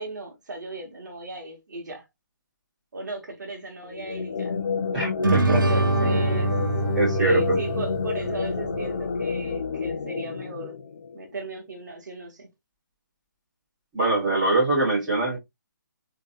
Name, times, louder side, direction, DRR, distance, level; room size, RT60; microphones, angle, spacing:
voice 1, 0.0-2.0 2.9-4.5 5.4-6.6 7.1-10.8 11.1-12.5, right 2 dB, 60° right, 2.0 m, -36 dB
sound 1, 3.9-11.3, left 5 dB, 35° left, 0.6 m, -30 dB
voice 2, 4.9-5.7 6.0-6.2 6.9-7.6 13.9-15.4, right 2 dB, 5° right, 2.5 m, -23 dB
sound 2, 5.2-8.8, right 2 dB, 80° right, 1.1 m, -25 dB
4.1 x 3.9 x 2.3 m
hypercardioid pair, 175°, 11 cm